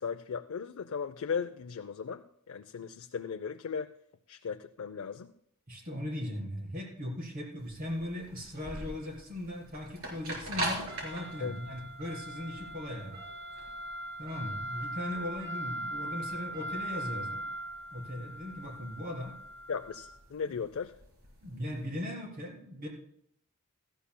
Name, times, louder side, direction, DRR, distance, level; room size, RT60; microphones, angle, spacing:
voice 1, 0.0-3.9 4.3-5.3 11.4-11.6 19.7-20.9, left 6 dB, 80° left, 8 dB, 0.5 m, -37 dB
voice 2, 5.7-13.2 14.2-17.4 17.9-19.3 21.4-22.9, left 1 dB, 45° right, -1 dB, 3.8 m, -38 dB
sound 1, 7.6-21.7, right 1 dB, 80° right, 4.2 m, -39 dB
17.0 x 14.0 x 2.2 m, 0.72 s
head